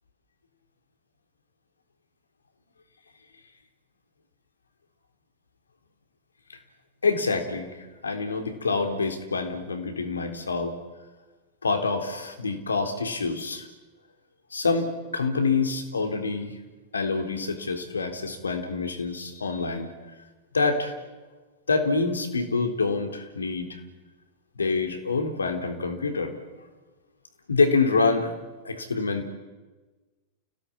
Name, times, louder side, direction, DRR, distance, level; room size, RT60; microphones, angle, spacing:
voice 1, 7.0-10.7 11.6-13.7 14.5-16.6 16.9-19.9 20.5-20.9 21.7-23.8 24.6-26.3 27.5-28.3 28.6-29.3, left 4 dB, 75° left, 5 dB, 3.7 m, -26 dB
29.5 x 17.5 x 8.9 m, 1.2 s
figure-of-eight pair, 90°, 0 cm